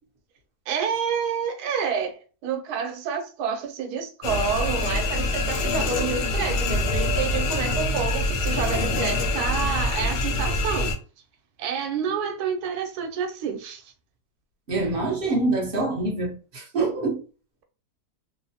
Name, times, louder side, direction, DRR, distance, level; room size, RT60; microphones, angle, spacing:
voice 1, 0.7-11.0 11.6-13.9, right 6 dB, 75° right, 1.1 m, -29 dB
sound 1, 4.2-11.0, left 2 dB, 65° left, 0.8 m, -25 dB
voice 2, 14.7-17.2, right 2 dB, 55° right, 0.6 m, -25 dB
3.0 x 2.0 x 2.7 m
omnidirectional pair, 1.7 m